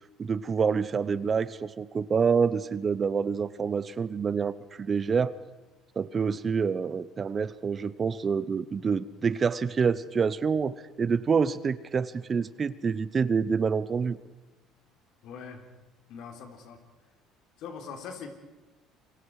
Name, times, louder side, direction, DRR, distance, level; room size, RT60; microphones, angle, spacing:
voice 1, 0.2-5.3 6.0-14.2, right 6 dB, 30° right, 17 dB, 0.8 m, -27 dB
voice 2, 15.2-15.6 16.1-16.8 17.6-18.3, left 6 dB, 65° left, 5 dB, 3.8 m, -41 dB
27.5 x 24.5 x 4.9 m, 1.1 s
cardioid pair, 115°, 0 cm